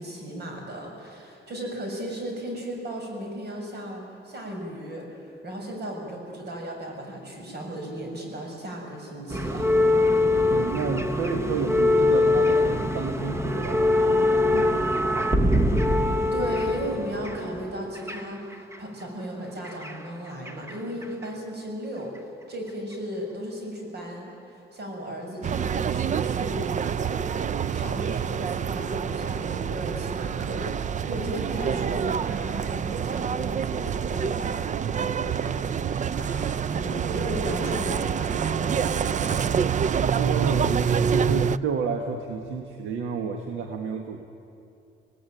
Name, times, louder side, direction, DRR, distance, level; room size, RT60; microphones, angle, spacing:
voice 1, 0.0-9.7 16.3-22.1 22.5-27.4 27.7-39.5, equal, 55° right, 1 dB, 6.9 m, -36 dB
sound 1, 9.3-18.8 19.6-20.8 21.0-21.2 22.2-22.3, left 2 dB, 15° right, 1.2 m, -23 dB
voice 2, 10.4-15.2 40.1-44.2, right 5 dB, 80° right, 4 dB, 1.6 m, -30 dB
sound 2, 25.4-41.6, right 7 dB, 40° right, 0.5 m, -27 dB
25.5 x 18.0 x 9.2 m, 2.6 s
cardioid pair, 90°, 20 cm